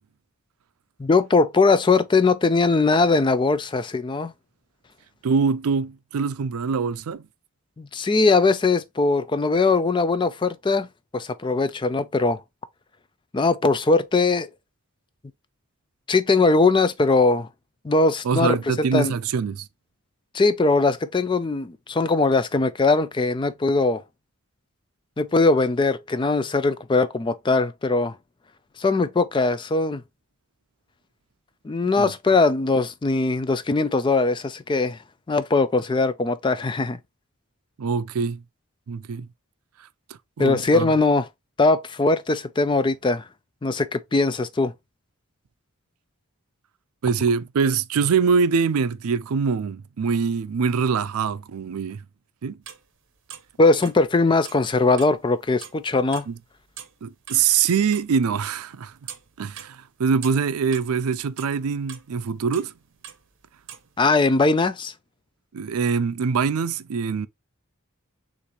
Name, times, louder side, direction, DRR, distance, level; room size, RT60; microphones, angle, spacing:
voice 1, 1.0-4.3 7.8-10.9 11.1-12.4 13.3-14.5 16.1-17.5 17.8-19.1 20.3-24.0 25.2-28.2 28.8-30.0 31.6-35.0 35.3-37.0 40.4-41.3 41.6-43.2 43.6-44.7 53.6-56.3 64.0-64.9, left 3 dB, 20° left, 0.3 m, -20 dB
voice 2, 5.2-7.3 18.2-19.7 32.0-32.1 37.8-38.4 38.9-39.3 40.4-40.9 47.0-52.0 52.4-52.6 56.3-56.4 57.0-58.9 59.4-62.7 65.5-67.3, right 5 dB, 80° right, 0.4 m, -24 dB
sound 1, 52.6-52.9 53.3-53.5 53.8-54.6 55.0-55.2 55.5-55.8 56.1-57.0 57.3-57.4 57.7-61.0 61.4-62.1 62.5-63.9, right 9 dB, 60° right, 0.8 m, -42 dB
6.7 x 2.6 x 3.0 m
head